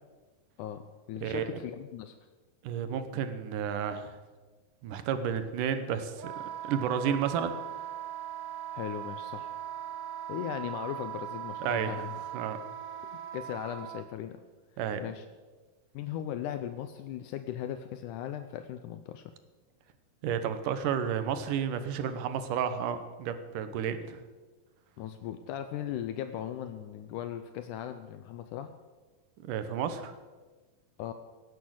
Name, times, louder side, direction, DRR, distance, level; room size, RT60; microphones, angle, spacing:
voice 1, 0.6-2.2 8.7-9.5 10.3-12.2 13.3-14.4 15.0-15.3 15.9-19.3 25.0-28.7 31.0-31.1, left 10 dB, 80° left, 9 dB, 2.1 m, -38 dB
voice 2, 1.2-1.5 2.6-4.2 4.8-6.3 6.6-7.5 11.7-12.0 12.3-12.6 14.8-15.0 20.2-24.2 29.4-30.1, right 8 dB, 75° right, 10 dB, 2.5 m, -31 dB
Wind instrument woodwind instrument, 6.2-14.0, right 11 dB, 60° right, 2.0 m, -40 dB
17.0 x 8.7 x 7.7 m, 1.3 s
omnidirectional pair, 3.8 m